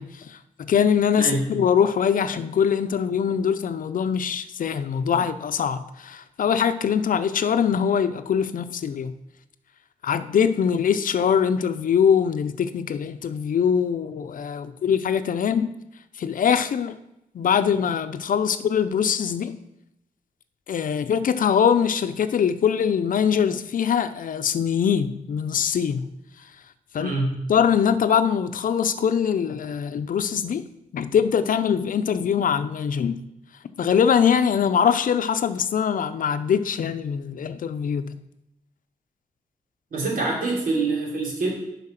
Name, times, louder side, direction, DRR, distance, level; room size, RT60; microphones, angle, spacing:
voice 1, 0.0-9.1 10.0-15.7 16.2-17.0 17.3-19.6 20.7-26.1 26.9-27.1 27.5-30.6 30.9-33.2 33.8-38.1, left 7 dB, 75° left, 11 dB, 0.6 m, -22 dB
voice 2, 27.0-27.3 39.9-41.5, right 3 dB, 80° right, -2 dB, 3.1 m, -25 dB
9.8 x 5.7 x 5.8 m, 0.84 s
wide cardioid pair, 135°, 14 cm